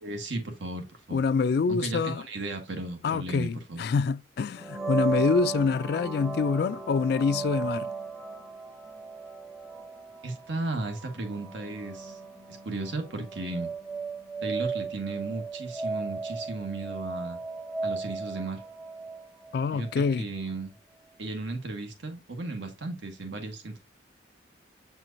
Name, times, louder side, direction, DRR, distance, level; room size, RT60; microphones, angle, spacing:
voice 1, 0.0-1.2 1.7-3.8 10.2-12.2 12.5-13.7 14.4-17.4 17.8-18.6 19.7-20.7 21.2-23.8, right 2 dB, 75° right, 1.4 m, -35 dB
voice 2, 1.1-2.2 3.0-7.9 19.5-20.2, left 5 dB, 55° left, 0.3 m, -26 dB
sound 1, 4.6-20.2, right 4 dB, 5° right, 0.7 m, -36 dB
8.1 x 4.4 x 2.6 m
head